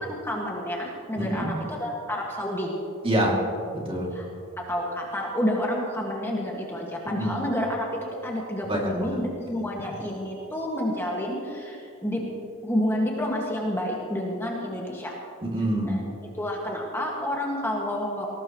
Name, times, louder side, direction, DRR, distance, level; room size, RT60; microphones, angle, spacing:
voice 1, 0.0-2.7 4.1-4.3 4.6-12.2 12.6-15.1 15.8-16.0 16.3-18.3, left 1 dB, 10° left, -2 dB, 1.8 m, -29 dB
voice 2, 1.2-1.5 3.0-3.4 3.7-4.1 7.2-7.4 8.7-9.2 15.4-16.0, right 1 dB, 25° right, -1 dB, 2.6 m, -26 dB
21.0 x 18.0 x 3.1 m, 2.6 s
head